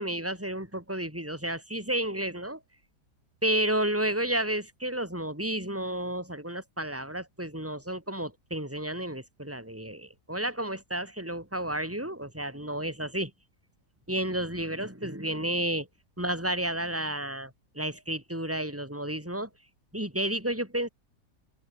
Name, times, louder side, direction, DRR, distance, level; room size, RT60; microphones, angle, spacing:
voice 1, 0.0-2.6 3.4-13.3 14.1-15.9 16.2-19.5 19.9-20.9, right 1 dB, 10° right, 7.2 m, -31 dB
omnidirectional pair, 1.7 m